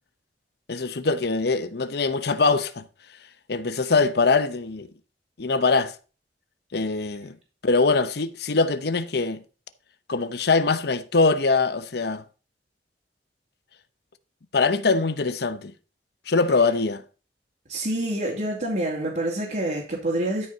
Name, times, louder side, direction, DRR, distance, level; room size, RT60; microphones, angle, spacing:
voice 1, 0.7-2.8 3.5-4.9 5.4-5.9 6.7-7.4 7.6-9.4 10.1-12.2 14.5-15.7 16.3-17.0, left 3 dB, 65° left, 0.8 m, -23 dB
voice 2, 17.7-20.5, right 1 dB, 50° right, 2.7 m, -27 dB
13.0 x 5.5 x 4.1 m
head